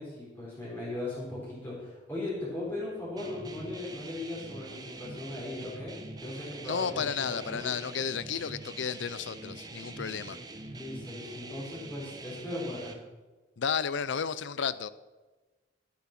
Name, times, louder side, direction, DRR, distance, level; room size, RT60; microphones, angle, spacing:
voice 1, 0.0-7.8 9.9-10.1 10.7-13.0, left 2 dB, 10° left, -8 dB, 3.9 m, -38 dB
sound 1, 3.2-12.9, right 2 dB, 20° right, 1.0 m, -45 dB
voice 2, 6.6-10.4 13.6-14.9, left 6 dB, 75° left, 17 dB, 0.6 m, -32 dB
13.0 x 8.6 x 6.0 m, 1.2 s
head